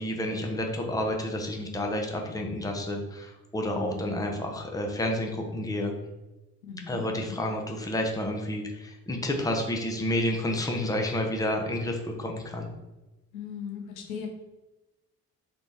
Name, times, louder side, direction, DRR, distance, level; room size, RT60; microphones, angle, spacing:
voice 1, 0.0-5.9 6.9-12.7, left 1 dB, 10° left, 2 dB, 0.8 m, -30 dB
voice 2, 3.7-4.2 6.7-7.4 13.3-14.3, left 6 dB, 70° left, 2 dB, 0.8 m, -38 dB
4.2 x 3.1 x 3.0 m, 1.0 s
figure-of-eight pair, 45°, 45 cm